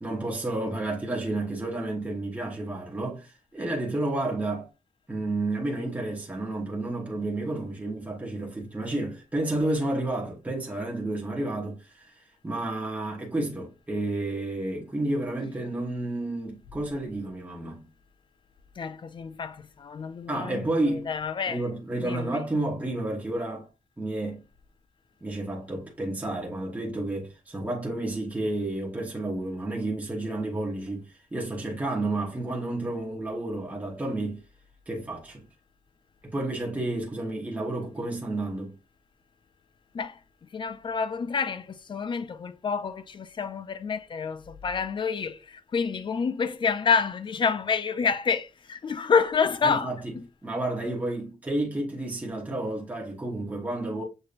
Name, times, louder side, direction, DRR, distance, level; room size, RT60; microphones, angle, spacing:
voice 1, 0.0-4.7 5.1-12.1 12.4-17.9 20.3-21.1 21.5-23.7 24.0-24.4 25.2-34.4 34.9-35.4 36.2-38.8 49.6-50.1 50.4-54.0, right 2 dB, 10° right, 1.0 m, -31 dB
voice 2, 18.8-21.6 22.0-22.5 39.9-40.2 40.5-50.2, left 5 dB, 40° left, 0.4 m, -28 dB
6.6 x 2.8 x 2.5 m
wide cardioid pair, 175°, 13 cm